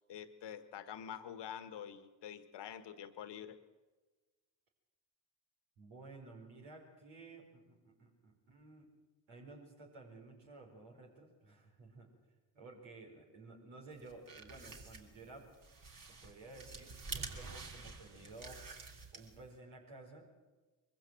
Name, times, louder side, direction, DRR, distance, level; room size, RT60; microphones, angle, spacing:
voice 1, 0.1-3.6, left 9 dB, 65° left, 12 dB, 1.7 m, -47 dB
voice 2, 5.8-8.9 9.3-12.1 12.5-15.5 16.2-18.6 19.1-20.3, right 3 dB, 75° right, 0 dB, 5.0 m, -54 dB
sound 1, 14.0-19.5, right 3 dB, 45° right, 3.0 m, -48 dB
22.5 x 15.5 x 7.8 m, 1.2 s
hypercardioid pair, 45°, 46 cm